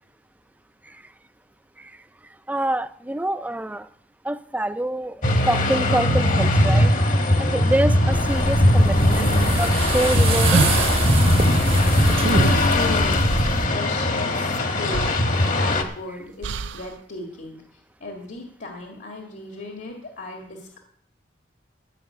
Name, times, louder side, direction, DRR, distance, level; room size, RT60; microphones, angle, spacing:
voice 1, 2.5-3.9 4.2-6.9 7.2-9.3 9.5-10.7 11.3-11.4, right 1 dB, 10° right, 13 dB, 0.4 m, -26 dB
sound 1, 5.2-15.8, left 1 dB, 45° left, 1.3 m, -20 dB
sound 2, 8.1-13.7, right 2 dB, 30° right, 0.9 m, -26 dB
sound 3, 9.6-11.3 12.1-13.0 14.5-14.6 14.9-15.9 16.4-16.9, right 5 dB, 75° right, 0.4 m, -27 dB
voice 2, 12.4-13.3 13.7-20.8, left 2 dB, 65° left, 2 dB, 1.9 m, -36 dB
14.0 x 5.8 x 8.3 m, 0.63 s
head